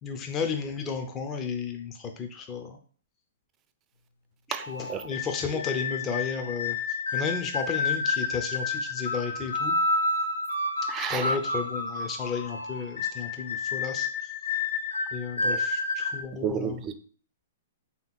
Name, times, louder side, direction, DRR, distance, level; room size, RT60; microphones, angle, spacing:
voice 1, 0.0-2.8 4.7-6.8 7.1-9.8 11.0-14.1 15.1-16.8, left 5 dB, 25° left, 4 dB, 0.6 m, -33 dB
voice 2, 4.5-5.0 10.9-11.4 15.4-15.6 16.4-16.9, right 8 dB, 25° right, 8 dB, 0.5 m, -32 dB
sound 1, 4.6-16.2, left 3 dB, 90° left, 0.7 m, -30 dB
3.6 x 2.9 x 4.1 m, 0.44 s
hypercardioid pair, 130°, 0 cm